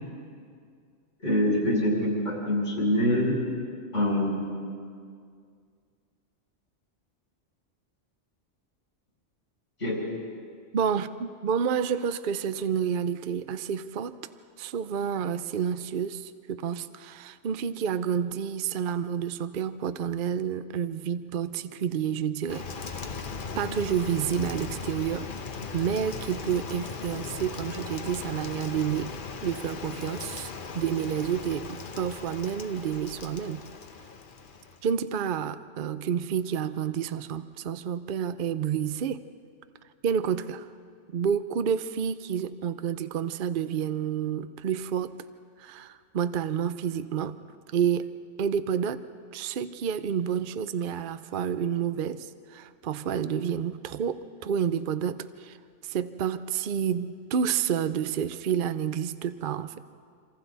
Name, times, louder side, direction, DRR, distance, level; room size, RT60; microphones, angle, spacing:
voice 1, 1.2-3.4 3.9-4.6 9.8-10.0, left 1 dB, 80° left, -3 dB, 6.2 m, -25 dB
voice 2, 10.7-14.2 14.6-23.2 23.6-25.3 25.7-29.1 29.4-33.6 34.8-39.2 40.0-40.7 41.1-45.2 45.6-47.4 47.7-48.1 48.4-49.0 49.3-55.6 55.8-59.8, right 8 dB, 55° right, 12 dB, 0.7 m, -29 dB
Rain, 22.5-34.9, left 5 dB, 45° left, 1.0 m, -38 dB
27.5 x 26.5 x 4.0 m, 2.2 s
omnidirectional pair, 1.2 m